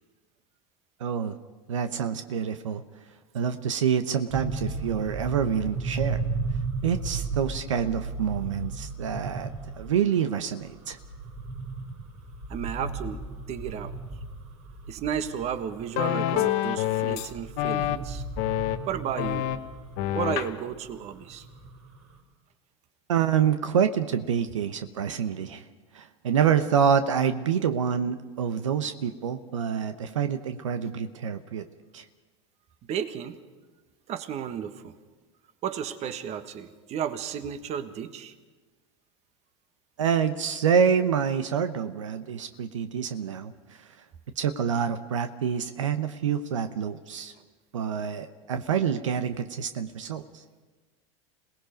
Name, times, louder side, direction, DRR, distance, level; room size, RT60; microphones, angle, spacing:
voice 1, 1.0-1.4 1.7-2.8 3.3-6.2 6.8-11.0 23.1-25.6 25.9-31.7 31.9-32.1 40.0-43.5 43.8-43.9 44.4-47.3 47.7-50.4, right 7 dB, 90° right, 9 dB, 0.9 m, -27 dB
sound 1, 4.3-22.2, right 3 dB, 60° right, 5.0 m, -35 dB
voice 2, 12.5-13.2 13.5-13.9 14.9-18.2 18.9-19.5 20.1-21.5 32.9-33.4 34.1-34.9 35.6-38.3, right 8 dB, 45° right, 10 dB, 1.5 m, -33 dB
sound 2, 15.7-17.3 17.6-18.0 18.4-18.8 19.2-19.6 20.0-20.5, left 14 dB, 60° left, 1.2 m, -27 dB
27.0 x 18.5 x 5.2 m, 1.3 s
hypercardioid pair, 95°, 16 cm